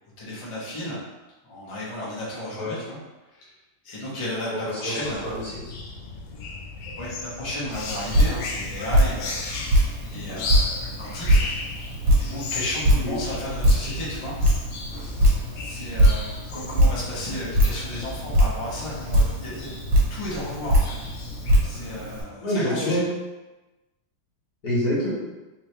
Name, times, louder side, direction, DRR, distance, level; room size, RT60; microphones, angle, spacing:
voice 1, 0.2-1.0 1.4-3.0 3.3-3.5 3.8-5.3 6.3-6.5 6.9-9.5 9.7-11.4 12.2-14.3 15.5-19.8 20.1-21.0 21.6-23.0, left 1 dB, 35° left, -6 dB, 0.4 m, -33 dB
voice 2, 4.5-5.0 5.2-5.6 13.0-13.1 22.4-23.0 24.6-25.1, left 1 dB, 60° left, -8 dB, 1.7 m, -26 dB
sound 1, 5.0-21.6, left 3 dB, 85° left, 1.4 m, -36 dB
Drip, 7.7-22.2, equal, 65° right, 1.5 m, -23 dB
3.5 x 3.0 x 3.3 m, 1.1 s
omnidirectional pair, 2.1 m